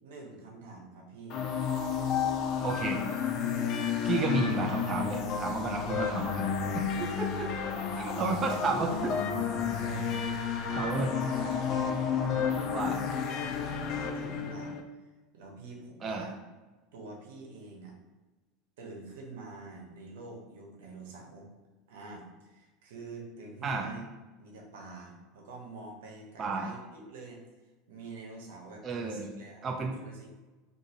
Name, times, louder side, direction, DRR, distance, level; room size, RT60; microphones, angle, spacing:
voice 1, 0.0-1.4 2.5-3.0 4.0-4.5 5.8-7.8 9.3-10.1 10.6-11.6 12.1-12.7 13.1-16.3 16.9-18.0 18.8-21.5 21.9-24.0 24.4-27.4 27.9-30.4, right 3 dB, 85° right, 0 dB, 0.9 m, -47 dB
sound 1, 1.3-14.8, left 7 dB, 45° left, 0.4 m, -31 dB
voice 2, 2.6-3.1 4.0-6.5 6.7-7.5 8.0-9.2 9.5-9.6 10.7-11.1 12.7-13.0 16.0-16.3 23.6-23.9 26.4-26.7 28.8-29.3 29.6-30.0, right 4 dB, 30° right, 2 dB, 0.4 m, -32 dB
2.7 x 2.6 x 3.9 m, 1.2 s
supercardioid pair, 125°, 0 cm